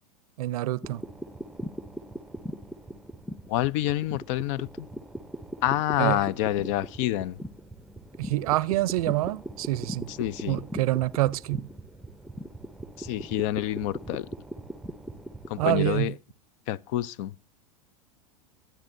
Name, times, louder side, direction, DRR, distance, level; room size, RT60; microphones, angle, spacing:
voice 1, 0.4-1.0 6.0-6.2 8.2-10.1 10.5-11.7 15.6-16.1, right 17 dB, 70° right, 0.6 m, -26 dB
sound 1, 0.8-16.1, equal, ahead, 0.6 m, -40 dB
voice 2, 3.5-4.9 5.6-7.4 10.1-10.6 13.0-14.3 15.5-16.1 16.7-17.3, left 14 dB, 55° left, 0.5 m, -27 dB
22.0 x 9.2 x 2.6 m
hypercardioid pair, 115°, 19 cm